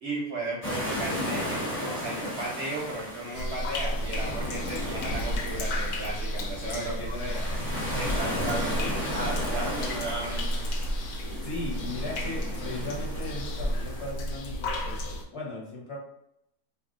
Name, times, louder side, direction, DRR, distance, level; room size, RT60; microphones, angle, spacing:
voice 1, 0.0-7.1 7.9-10.7, right 2 dB, 60° right, -3 dB, 0.7 m, -35 dB
sound 1, 0.6-14.1, left 1 dB, 10° left, 0.8 m, -35 dB
sound 2, 3.3-15.2, equal, 75° left, 1.0 m, -32 dB
voice 2, 6.7-8.0 11.4-16.0, left 2 dB, 50° left, -4 dB, 1.0 m, -37 dB
2.6 x 2.0 x 3.6 m, 0.80 s
omnidirectional pair, 1.7 m